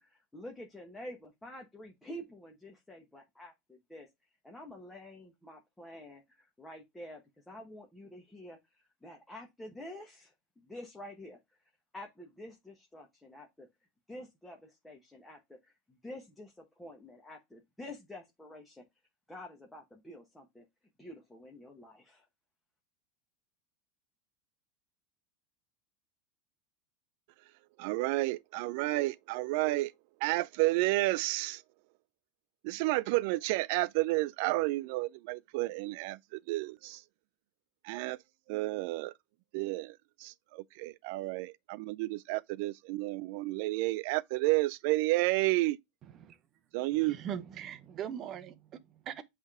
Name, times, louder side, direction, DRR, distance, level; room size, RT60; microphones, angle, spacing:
voice 1, 0.0-4.1 4.4-11.6 11.9-13.7 14.1-18.8 19.3-20.6 21.0-22.3, left 1 dB, 5° left, 1.1 m, -48 dB
voice 2, 27.8-29.9 30.2-31.6 32.6-37.0 37.8-38.2 38.5-39.1 39.5-45.8 46.7-47.2, right 20 dB, 55° right, 0.4 m, -31 dB
voice 3, 46.9-49.2, right 9 dB, 30° right, 0.8 m, -41 dB
8.1 x 3.3 x 3.5 m
supercardioid pair, 155°, 0 cm